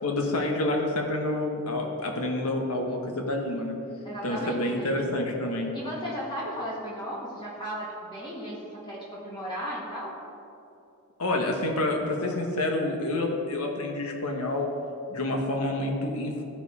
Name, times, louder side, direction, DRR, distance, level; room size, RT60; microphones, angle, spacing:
voice 1, 0.0-3.8 4.2-5.7 11.2-14.7 15.1-16.4, left 2 dB, 80° left, 1 dB, 1.2 m, -28 dB
voice 2, 4.0-4.9 5.7-10.1, equal, 20° left, -6 dB, 1.5 m, -35 dB
13.5 x 4.6 x 4.1 m, 2.7 s
head